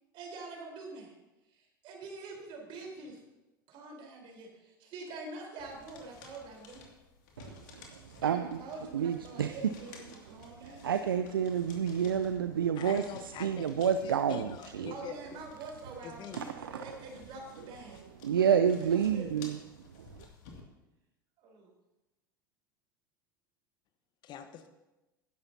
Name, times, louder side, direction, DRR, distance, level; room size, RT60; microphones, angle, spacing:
voice 1, 0.1-1.1 1.5-3.2 3.7-6.9 8.2-11.0 14.9-16.2 16.6-18.0 18.4-19.5 21.4-21.7, right 3 dB, 45° right, 0 dB, 4.2 m, -45 dB
sound 1, 5.6-20.6, left 4 dB, 60° left, 2.4 m, -56 dB
voice 2, 7.4-8.6 8.9-9.6 10.8-13.0 13.4-14.9 16.3-16.7 18.2-19.6 20.0-20.3, right 8 dB, 80° right, 10 dB, 0.5 m, -29 dB
voice 3, 12.7-15.4 16.0-16.6 24.2-24.7, left 8 dB, 40° left, 8 dB, 1.3 m, -45 dB
19.5 x 10.5 x 2.8 m, 1.0 s
figure-of-eight pair, 80°, 12 cm